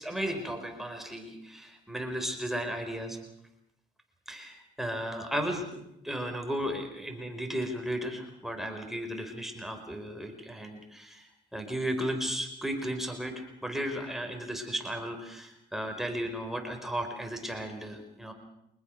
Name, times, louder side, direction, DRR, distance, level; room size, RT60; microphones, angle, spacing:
voice 1, 0.0-3.2 4.3-18.3, equal, ahead, 4 dB, 5.0 m, -35 dB
24.5 x 20.5 x 6.7 m, 0.81 s
cardioid pair, 90°, 20 cm